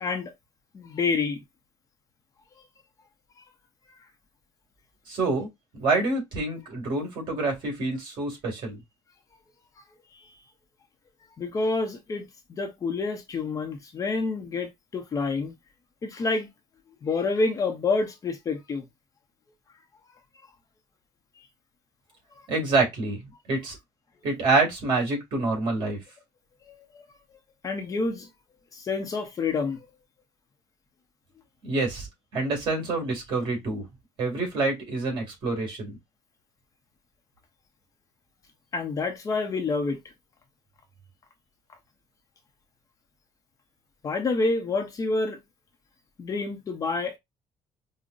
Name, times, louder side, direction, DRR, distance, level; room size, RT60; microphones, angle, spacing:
voice 1, 0.0-0.3 0.7-1.4 10.1-10.3 11.4-15.5 16.0-16.5 17.0-18.8 21.4-21.5 26.7-27.0 27.6-28.3 28.7-29.8 38.7-40.0 44.0-45.4 46.2-47.2, left 3 dB, 30° left, 0.7 m, -28 dB
voice 2, 5.1-5.5 5.7-8.8 22.5-23.8 24.2-26.0 31.6-32.1 32.3-33.9 34.2-36.0, right 3 dB, 45° right, 2.1 m, -27 dB
5.2 x 2.1 x 2.4 m
cardioid pair, 155°, 11 cm